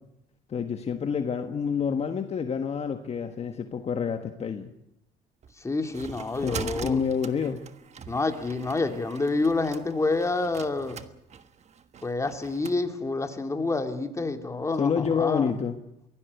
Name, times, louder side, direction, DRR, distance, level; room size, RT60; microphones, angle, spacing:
voice 1, 0.5-4.7 6.4-7.6 14.8-15.8, left 6 dB, 40° left, 7 dB, 1.5 m, -28 dB
sound 1, 5.4-12.8, right 7 dB, 40° right, 1.4 m, -42 dB
voice 2, 5.6-7.0 8.1-11.0 12.0-15.6, left 3 dB, 15° left, 5 dB, 2.6 m, -28 dB
23.0 x 17.0 x 8.2 m, 0.84 s
cardioid pair, 110°, 17 cm